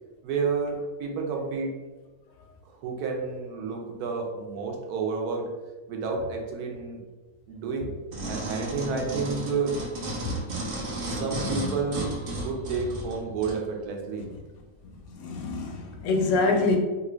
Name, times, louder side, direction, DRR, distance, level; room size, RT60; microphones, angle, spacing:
voice 1, 0.2-1.7 2.6-5.5 5.9-7.0 7.5-7.9 8.3-9.8 11.1-14.3, right 4 dB, 80° right, 2 dB, 1.1 m, -30 dB
sound 1, 8.1-13.6 14.2-14.3, right 1 dB, 55° right, 0.7 m, -33 dB
voice 2, 15.2-16.8, left 3 dB, 75° left, 2 dB, 1.0 m, -25 dB
3.0 x 2.5 x 3.0 m, 1.2 s
omnidirectional pair, 1.6 m